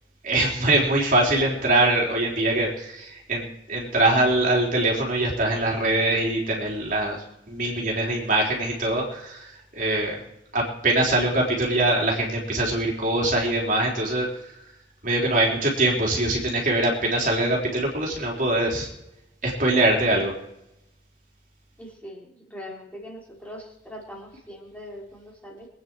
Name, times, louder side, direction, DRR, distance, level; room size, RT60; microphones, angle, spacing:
voice 1, 0.2-10.2 10.5-14.3 15.0-18.9 19.4-20.3, right 2 dB, 45° right, -1 dB, 3.8 m, -23 dB
voice 2, 21.8-25.7, equal, 10° left, -3 dB, 3.8 m, -41 dB
24.5 x 9.4 x 4.7 m, 0.85 s
head